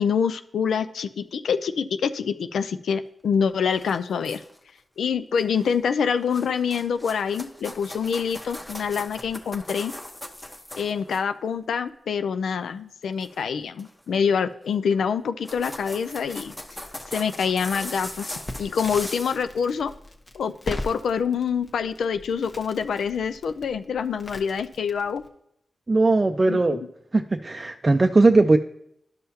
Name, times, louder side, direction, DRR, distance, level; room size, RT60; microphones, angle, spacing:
voice 1, 0.0-4.4 5.0-9.9 10.7-16.5 17.1-19.9 20.3-25.2 26.5-26.9, left 6 dB, 90° left, 11 dB, 0.3 m, -26 dB
sound 1, 3.7-4.7 5.4-5.8 6.1-11.2 13.2-13.4 13.8-14.2 14.9-15.0 15.3-19.4, left 1 dB, 15° left, 1.0 m, -39 dB
Crackle, 18.5-25.3, left 1 dB, 40° left, 1.2 m, -40 dB
voice 2, 25.9-26.8 27.1-28.6, right 3 dB, 35° right, 6 dB, 0.4 m, -19 dB
11.5 x 5.6 x 2.8 m, 0.74 s
cardioid pair, 55°, 0 cm